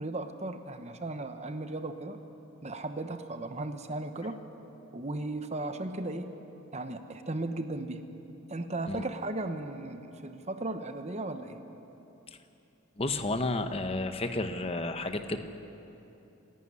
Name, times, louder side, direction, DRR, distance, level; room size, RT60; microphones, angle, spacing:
voice 1, 0.0-2.2 2.6-4.4 4.9-6.3 6.7-8.1 8.5-11.6, right 2 dB, 30° right, 8 dB, 1.0 m, -36 dB
voice 2, 13.0-15.4, left 2 dB, 25° left, 8 dB, 0.9 m, -31 dB
27.0 x 11.5 x 9.9 m, 2.9 s
head